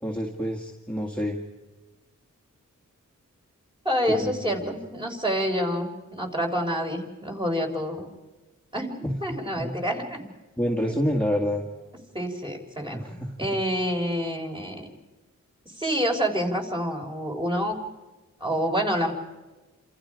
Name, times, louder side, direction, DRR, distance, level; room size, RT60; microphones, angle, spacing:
voice 1, 0.0-1.4 4.1-4.3 4.6-4.7 9.0-9.8 10.2-10.3 10.6-11.6 12.9-13.5, equal, 5° left, -1 dB, 2.1 m, -28 dB
voice 2, 3.8-8.1 8.7-10.2 12.1-13.0 13.4-14.9 15.7-17.8 18.4-19.1, equal, 15° right, 2 dB, 3.8 m, -27 dB
28.5 x 27.0 x 5.0 m, 1.2 s
wide cardioid pair, 100°, 32 cm